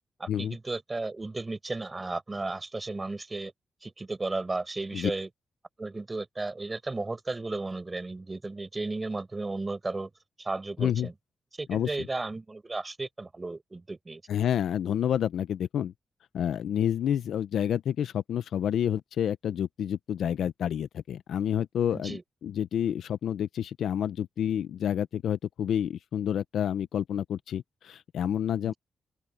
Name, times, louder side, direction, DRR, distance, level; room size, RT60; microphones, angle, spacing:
voice 1, 0.2-3.5 3.8-5.3 5.8-10.1 10.4-11.1 11.6-14.2 21.9-22.2 28.6-28.8, right 3 dB, 20° right, 6.0 m, -34 dB
voice 2, 14.3-15.9 16.3-28.7, left 9 dB, 85° left, 0.7 m, -29 dB
open air
cardioid pair, 120°, 0 cm